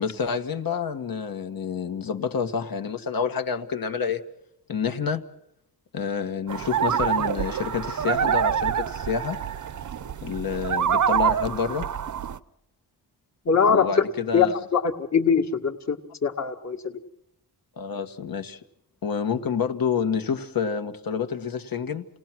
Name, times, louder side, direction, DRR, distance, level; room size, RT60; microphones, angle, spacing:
voice 1, 0.0-4.2 4.7-5.2 5.9-9.4 10.2-11.9 13.7-14.6 17.8-18.6 19.0-22.1, left 6 dB, 60° left, 6 dB, 1.7 m, -28 dB
sound 1, 6.5-12.4, right 8 dB, 45° right, 0.8 m, -26 dB
voice 2, 13.5-13.9 14.3-14.5 14.7-17.0, left 6 dB, 40° left, 4 dB, 2.0 m, -22 dB
29.0 x 19.0 x 6.1 m, 0.76 s
wide cardioid pair, 125°, 40 cm